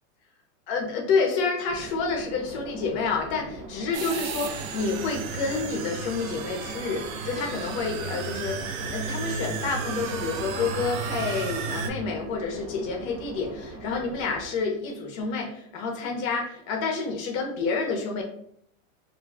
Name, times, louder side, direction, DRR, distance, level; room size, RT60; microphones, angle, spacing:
voice 1, 0.7-18.2, left 4 dB, 45° left, 1 dB, 0.7 m, -29 dB
sound 1, 1.7-14.5, right 1 dB, 25° right, 0.6 m, -41 dB
sound 2, 3.9-11.9, right 5 dB, 90° right, 0.5 m, -34 dB
2.5 x 2.2 x 3.3 m, 0.67 s
supercardioid pair, 135°, 40 cm